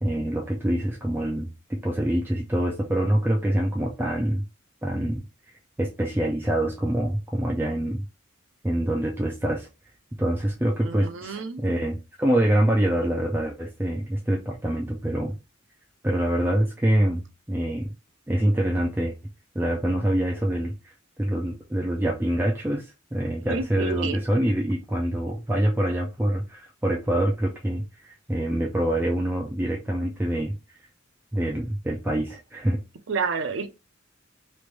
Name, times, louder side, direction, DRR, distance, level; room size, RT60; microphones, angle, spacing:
voice 1, 0.0-1.5 1.8-4.4 4.8-5.2 5.8-8.0 8.6-9.7 10.2-15.4 16.0-17.2 17.5-17.9 18.3-19.1 19.5-20.9 21.2-30.5 31.3-32.8, right 1 dB, 10° right, 0.5 m, -25 dB
voice 2, 10.8-11.6 23.5-24.2 33.1-33.7, right 5 dB, 65° right, 0.5 m, -29 dB
3.1 x 2.5 x 3.2 m
head